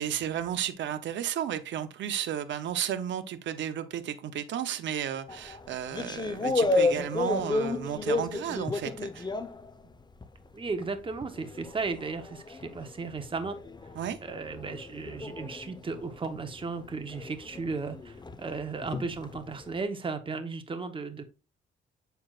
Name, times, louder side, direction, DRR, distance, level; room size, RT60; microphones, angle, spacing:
voice 1, 0.0-9.3 14.0-14.2, right 10 dB, 70° right, 0.8 m, -33 dB
sound 1, 5.3-10.5 10.8-19.7, left 3 dB, 20° left, 0.9 m, -33 dB
voice 2, 10.5-13.6 14.2-21.2, right 4 dB, 25° right, 1.1 m, -35 dB
7.6 x 6.9 x 2.5 m
cardioid pair, 90°, 20 cm